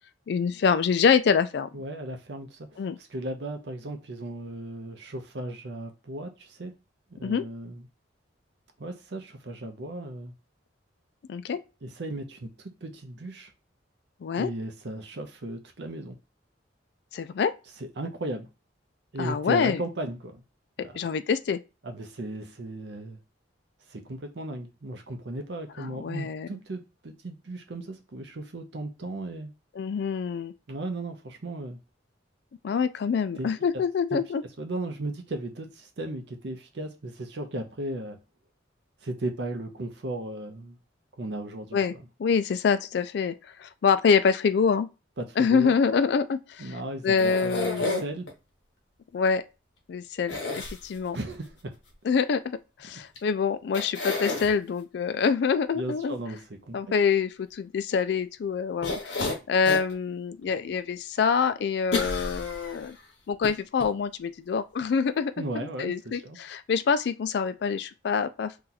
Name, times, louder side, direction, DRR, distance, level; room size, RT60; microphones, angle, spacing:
voice 1, 0.3-1.7 2.8-3.0 7.2-7.4 11.3-11.6 14.2-14.5 17.1-17.5 19.2-19.8 20.8-21.6 25.8-26.5 29.8-30.5 32.6-34.4 41.7-41.9 42.2-43.3 43.6-44.9 45.4-46.8 47.0-48.0 49.1-49.4 49.9-50.3 50.8-51.2 52.0-56.2 56.7-63.0 63.3-68.5, left 6 dB, 60° left, 0.3 m, -25 dB
voice 2, 1.7-6.7 7.2-7.8 8.8-10.3 11.8-13.5 14.4-16.2 17.8-18.5 19.1-20.4 20.8-21.0 21.8-23.2 23.9-29.5 30.7-31.8 33.4-33.5 34.1-34.2 34.6-38.2 39.0-40.8 41.2-41.8 45.2-45.7 46.6-48.3 51.1-51.7 55.7-56.8 65.4-65.9 66.2-66.4, right 1 dB, 60° right, 0.6 m, -36 dB
sound 1, 47.2-48.3 50.3-51.2 53.2-53.3 53.7-54.5 58.8-59.9 60.4-60.5 61.9-62.9 63.4-63.5 63.8-63.9, left 3 dB, 80° left, 0.9 m, -30 dB
2.8 x 2.3 x 3.9 m
head